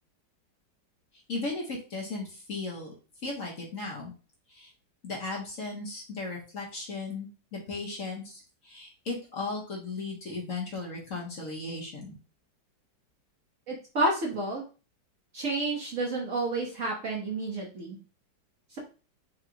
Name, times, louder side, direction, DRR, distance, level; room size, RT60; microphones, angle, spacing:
voice 1, 1.3-2.9 3.2-4.1 4.5-4.7 5.0-12.1, left 3 dB, 50° left, -2 dB, 1.3 m, -36 dB
voice 2, 13.7-14.6 15.3-18.0 18.7-18.8, right 2 dB, 50° right, -1 dB, 1.0 m, -30 dB
4.6 x 2.3 x 3.9 m, 0.34 s
omnidirectional pair, 2.0 m